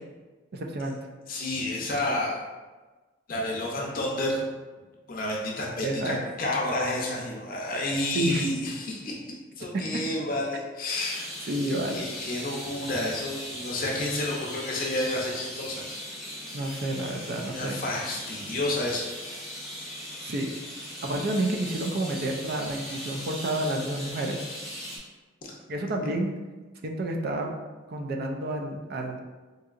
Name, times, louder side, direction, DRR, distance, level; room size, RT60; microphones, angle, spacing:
voice 1, 0.5-1.0 5.8-6.2 8.1-8.4 11.4-12.1 16.5-17.8 20.2-20.5 21.0-24.4 25.7-26.3 26.8-27.5 27.9-29.2, right 1 dB, 50° right, 2 dB, 0.4 m, -29 dB
voice 2, 1.3-2.4 3.3-4.4 5.1-9.2 9.6-11.3 11.9-15.8 17.4-19.1, left 1 dB, 45° left, -2 dB, 0.5 m, -30 dB
sound 1, 10.9-25.0, equal, ahead, 0.8 m, -39 dB
3.9 x 2.7 x 2.4 m, 1.3 s
head